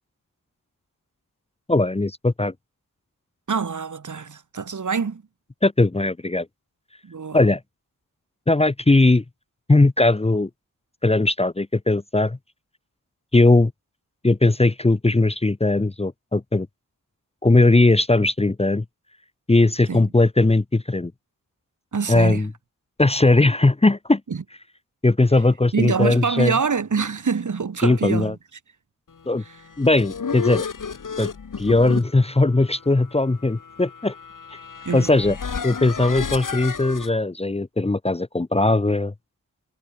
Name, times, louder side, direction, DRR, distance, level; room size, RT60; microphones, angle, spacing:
voice 1, 1.7-2.5 5.6-6.5 7.3-7.6 8.5-9.2 9.7-10.5 11.0-12.4 13.3-13.7 14.2-16.7 17.4-18.8 19.5-21.1 22.1-22.5 23.0-24.2 25.0-26.5 27.8-28.4 29.3-29.4 29.8-30.7 31.2-31.3 31.6-34.1 34.5-34.6 34.9-35.4 35.6-39.1, left 2 dB, 20° left, 1.1 m, -19 dB
voice 2, 3.5-5.2 7.0-7.4 19.9-20.1 21.9-22.4 24.3-24.4 25.7-28.4 34.9-35.2, right 5 dB, 60° right, 4.1 m, -25 dB
sound 1, 29.6-37.1, left 5 dB, 65° left, 6.1 m, -32 dB
wide cardioid pair, 125°, 33 cm